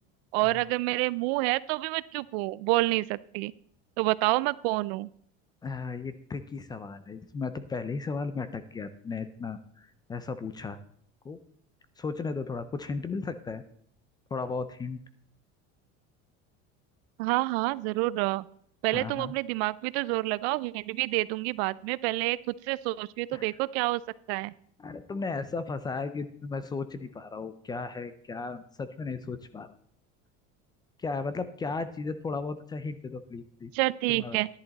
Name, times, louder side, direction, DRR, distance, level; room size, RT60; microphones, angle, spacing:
voice 1, 0.3-3.5 4.0-5.1 17.2-18.5 18.8-24.0 24.3-24.5 33.7-34.5, right 20 dB, 75° right, 19 dB, 0.5 m, -28 dB
voice 2, 5.6-10.8 11.2-11.4 12.0-13.6 14.3-15.0 18.9-19.3 23.3-23.5 24.8-29.7 31.0-33.7 34.1-34.4, left 4 dB, 15° left, 13 dB, 0.4 m, -35 dB
11.0 x 10.5 x 4.0 m, 0.62 s
cardioid pair, 160°, 31 cm